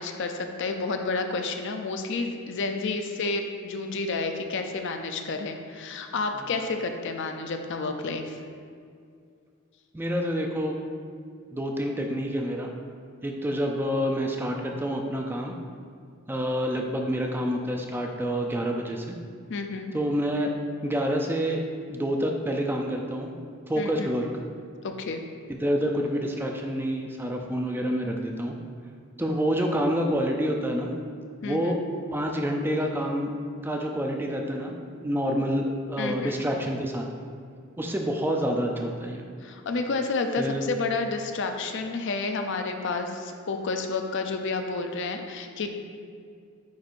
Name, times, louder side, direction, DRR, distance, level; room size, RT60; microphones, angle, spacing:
voice 1, 0.0-8.4 19.5-19.9 23.8-24.1 24.8-25.2 31.4-31.7 36.0-36.4 39.4-45.8, left 3 dB, 60° left, 5 dB, 0.5 m, -30 dB
voice 2, 9.9-10.8 11.5-12.7 13.2-15.6 16.3-19.2 19.9-20.5 20.8-21.6 21.9-23.3 23.7-24.3 25.5-28.6 29.2-30.9 31.4-31.8 32.1-33.3 33.6-37.0 37.8-39.2 40.4-40.6, equal, 10° right, 1 dB, 0.4 m, -28 dB
9.3 x 4.5 x 2.5 m, 2.3 s
head